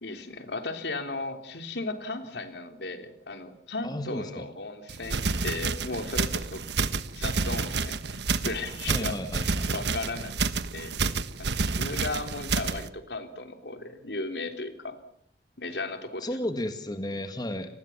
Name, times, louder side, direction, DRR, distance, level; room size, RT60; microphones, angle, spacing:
voice 1, 0.0-6.6 7.2-9.2 9.7-11.0 11.4-15.0 15.6-16.3 17.5-17.7, left 2 dB, 75° left, 8 dB, 3.3 m, -36 dB
voice 2, 3.8-4.5 8.9-9.7 16.2-17.7, left 1 dB, 25° left, 8 dB, 1.8 m, -33 dB
sound 1, 4.9-12.9, right 4 dB, 75° right, 1.3 m, -29 dB
29.0 x 19.5 x 7.2 m, 0.66 s
head